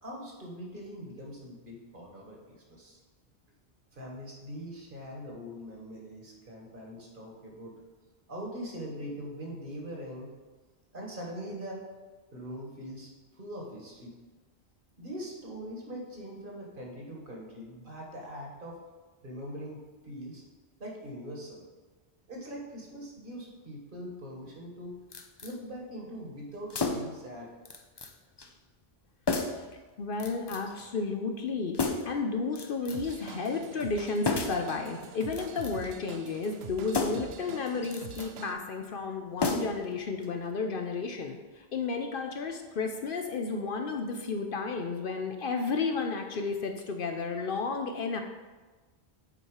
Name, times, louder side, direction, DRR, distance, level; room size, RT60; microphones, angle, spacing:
voice 1, 0.0-3.0 3.9-7.7 8.3-10.3 10.9-11.8 12.3-14.2 15.0-18.8 19.2-20.4 20.8-21.6 22.3-24.9 25.4-27.5, equal, 50° right, -1 dB, 1.6 m, -42 dB
sound 1, 25.1-25.6 26.7-27.2 27.7-28.1 28.4-28.5 29.3-29.7 30.2-30.8 31.7-32.2 32.6-33.2 34.2-34.7 35.3-35.9 36.9-37.4 37.8-38.3 39.4-39.9 40.2-40.3, left 3 dB, 35° left, 0.4 m, -32 dB
voice 2, 30.0-48.2, left 4 dB, 60° left, 4 dB, 0.7 m, -32 dB
Drum kit / Drum, 32.9-38.5, right 6 dB, 70° right, 0.8 m, -44 dB
7.8 x 4.4 x 4.7 m, 1.3 s
omnidirectional pair, 1.1 m